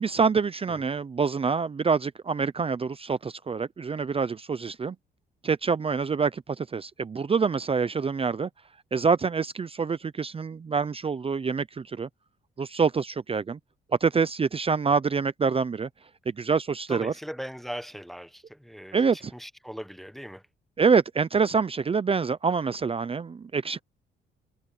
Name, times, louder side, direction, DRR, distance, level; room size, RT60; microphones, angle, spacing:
voice 1, 0.0-5.0 5.4-8.5 8.9-12.1 12.6-13.6 14.0-15.9 16.3-17.1 18.9-19.3 20.8-23.8, right 5 dB, 30° right, 0.7 m, -26 dB
voice 2, 16.9-20.4, equal, ahead, 0.9 m, -39 dB
cardioid pair, 90°, 20 cm